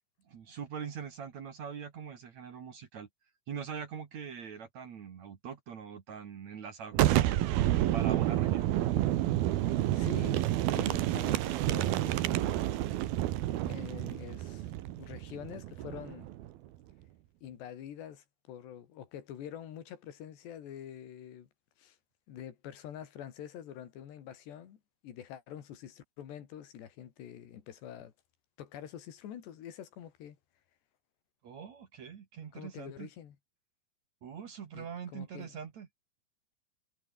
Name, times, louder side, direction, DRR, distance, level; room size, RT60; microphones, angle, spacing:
voice 1, 0.3-3.1 3.5-7.6 7.9-8.7 31.4-33.1 34.2-35.9, right 7 dB, 50° right, 2.8 m, -43 dB
Boom, 6.9-16.5, right 14 dB, 70° right, 2.9 m, -29 dB
voice 2, 9.9-13.0 13.7-16.3 17.4-21.5 21.8-22.0 22.3-28.1 28.6-30.4 32.5-33.4 34.7-35.5, left 10 dB, 80° left, 4.6 m, -46 dB
omnidirectional pair, 4.9 m